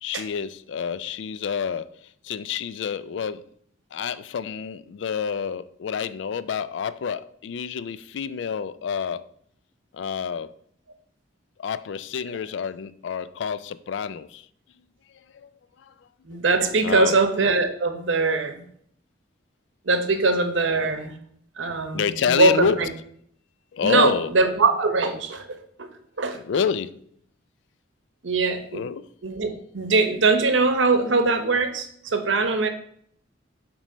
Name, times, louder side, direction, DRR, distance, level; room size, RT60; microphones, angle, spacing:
voice 1, 0.0-3.4 3.9-9.3 9.9-10.5 11.6-14.5 15.1-15.5 15.8-16.1 16.8-17.2 21.9-22.8 23.7-24.3 26.5-27.0 28.7-29.1, left 6 dB, 70° left, 0.3 m, -28 dB
voice 2, 16.2-18.6 19.8-21.1 21.6-22.9 23.8-25.9 26.2-26.4 28.2-28.8 29.2-32.7, right 3 dB, 80° right, 0.8 m, -22 dB
7.3 x 3.2 x 5.2 m
head